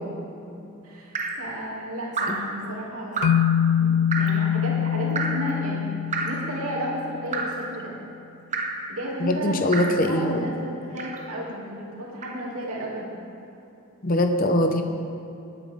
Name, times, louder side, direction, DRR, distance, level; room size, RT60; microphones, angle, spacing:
voice 1, 0.8-3.3 3.8-5.9 6.2-7.9 8.9-9.6 10.0-13.1, right 1 dB, 85° right, -4 dB, 2.8 m, -33 dB
Drip, 1.1-1.5 2.1-2.5 3.2-3.5 4.1-4.4 5.2-5.5 6.1-6.5 7.3-7.7 8.5-8.9 9.7-10.0 11.0-11.3 12.2-12.4, right 3 dB, 35° right, 0.9 m, -29 dB
sound 1, 3.2-7.5, left 9 dB, 85° left, 0.3 m, -24 dB
voice 2, 9.2-10.5 14.0-14.8, left 1 dB, 40° left, 5 dB, 0.9 m, -22 dB
18.0 x 9.0 x 3.7 m, 2.8 s
head